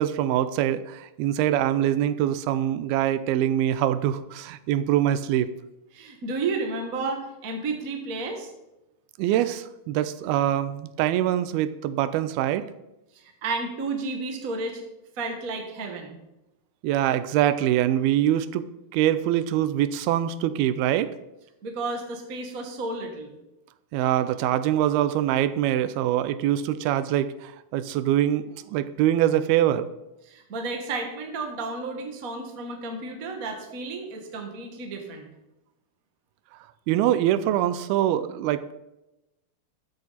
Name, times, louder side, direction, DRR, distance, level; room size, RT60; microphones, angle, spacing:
voice 1, 0.0-5.5 9.2-12.7 16.8-18.7 18.9-21.1 23.9-29.9 36.9-38.7, right 12 dB, 85° right, 14 dB, 2.5 m, -24 dB
voice 2, 5.9-8.5 13.1-14.8 15.1-16.2 21.6-23.4 30.2-35.3, right 3 dB, 45° right, 3 dB, 1.1 m, -32 dB
13.5 x 9.1 x 4.1 m, 0.95 s
omnidirectional pair, 4.4 m